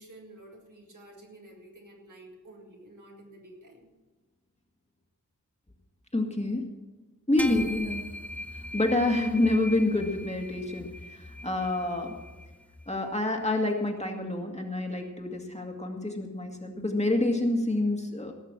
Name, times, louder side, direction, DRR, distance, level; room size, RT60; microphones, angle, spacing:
voice 1, 0.0-3.9 7.3-7.6, right 1 dB, 70° right, -2 dB, 3.6 m, -51 dB
voice 2, 6.1-6.7 7.3-8.1 8.7-12.1 12.9-18.3, left 2 dB, 20° left, 1 dB, 2.3 m, -27 dB
sound 1, 7.4-13.0, left 1 dB, 5° left, 1.5 m, -40 dB
17.5 x 6.6 x 7.5 m, 1.2 s
wide cardioid pair, 55°, 32 cm